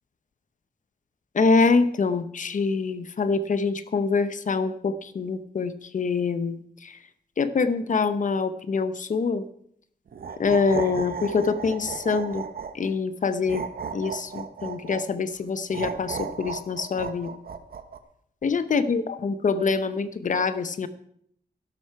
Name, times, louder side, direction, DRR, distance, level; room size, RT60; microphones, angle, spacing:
voice 1, 1.3-7.0 7.4-9.4 10.4-12.4 12.7-13.6 13.9-17.3 18.4-20.9, left 4 dB, 45° left, 13 dB, 0.8 m, -25 dB
sound 1, 10.1-12.9 13.5-15.1 15.7-18.0, right 6 dB, 60° right, 0.9 m, -35 dB
12.5 x 11.5 x 4.6 m, 0.68 s
wide cardioid pair, 170°, 18 cm